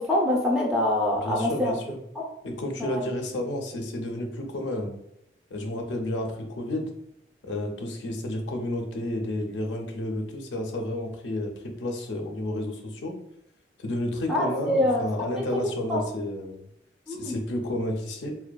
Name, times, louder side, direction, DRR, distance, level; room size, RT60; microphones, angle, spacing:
voice 1, 0.0-1.7 2.2-2.3 2.8-3.0 14.3-15.3 15.6-16.0 17.1-17.3, left 1 dB, 5° right, -3 dB, 0.3 m, -25 dB
voice 2, 1.1-2.0 2.4-5.0 5.5-6.9 7.4-13.1 13.8-16.7 17.1-18.3, left 1 dB, 90° left, 3 dB, 0.5 m, -31 dB
2.6 x 2.2 x 2.2 m, 0.79 s
head